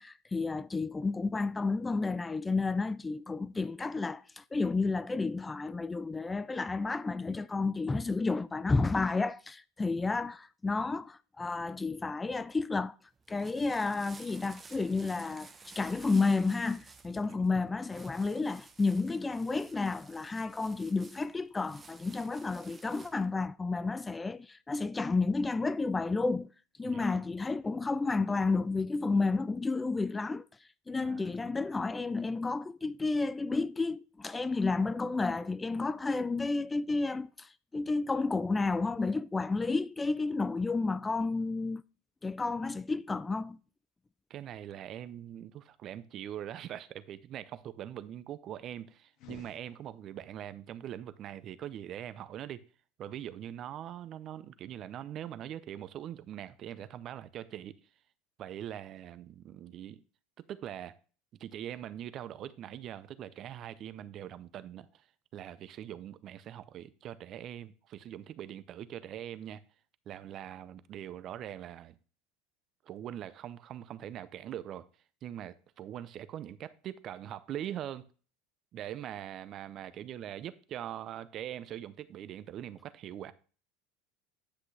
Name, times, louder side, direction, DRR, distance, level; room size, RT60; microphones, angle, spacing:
voice 1, 0.0-13.0 13.3-26.5 26.8-30.4 30.9-41.8 42.2-43.6, left 3 dB, 15° left, 0.3 m, -31 dB
sound 1, 13.1-23.3, right 4 dB, 20° right, 1.0 m, -55 dB
voice 2, 26.8-27.2 31.0-31.3 44.3-52.6 53.0-57.8 58.4-60.0 60.5-60.9 61.4-65.0 65.3-69.6 70.1-71.9 72.8-74.9 75.2-78.1 78.7-83.3, right 11 dB, 45° right, 0.6 m, -42 dB
sound 2, 49.1-50.4, left 7 dB, 60° left, 1.5 m, -54 dB
9.9 x 5.9 x 3.3 m
supercardioid pair, 100°, 0 cm